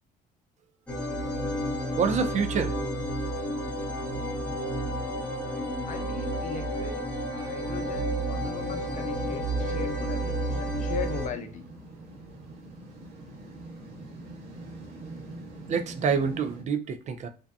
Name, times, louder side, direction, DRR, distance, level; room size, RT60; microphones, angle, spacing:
sound 1, 0.9-11.3, right 1 dB, 5° left, 0.8 m, -31 dB
voice 1, 2.0-2.8 15.7-17.3, right 6 dB, 45° right, 0.4 m, -27 dB
voice 2, 5.9-7.1 7.3-11.6 15.6-15.7, left 7 dB, 45° left, 0.5 m, -39 dB
sound 2, 7.8-16.6, right 2 dB, 70° right, 1.0 m, -44 dB
2.6 x 2.1 x 2.3 m
cardioid pair, 110°, 17 cm